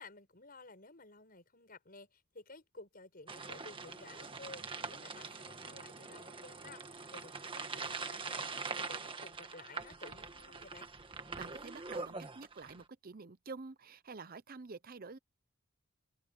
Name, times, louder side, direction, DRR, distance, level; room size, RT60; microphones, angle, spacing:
voice 1, 0.0-10.9, left 3 dB, 40° left, 7.1 m, -54 dB
sound 1, 3.3-12.8, right 4 dB, 25° right, 1.6 m, -43 dB
voice 2, 11.4-15.2, right 4 dB, 40° right, 0.8 m, -48 dB
head